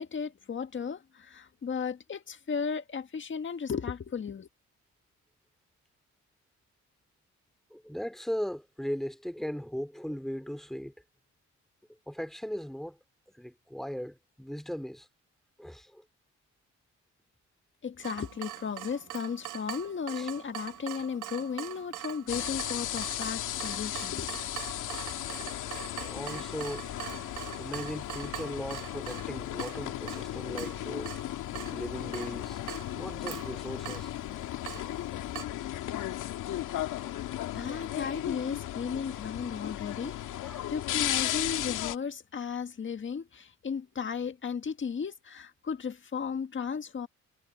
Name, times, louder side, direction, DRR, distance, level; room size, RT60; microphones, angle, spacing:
voice 1, 0.0-4.5 17.8-24.4 37.5-47.1, left 6 dB, 40° left, 1.8 m, -35 dB
voice 2, 7.7-10.9 12.1-13.0 13.4-15.1 15.6-16.0 20.2-20.3 26.0-26.9 27.6-31.2 31.7-34.1 37.5-37.6 40.3-40.7, equal, ahead, 2.5 m, -38 dB
Water tap faucet / Drip, 18.0-35.4, right 13 dB, 85° right, 1.2 m, -43 dB
sound 1, 22.3-42.0, left 13 dB, 85° left, 2.2 m, -35 dB
cardioid pair, 90°, 30 cm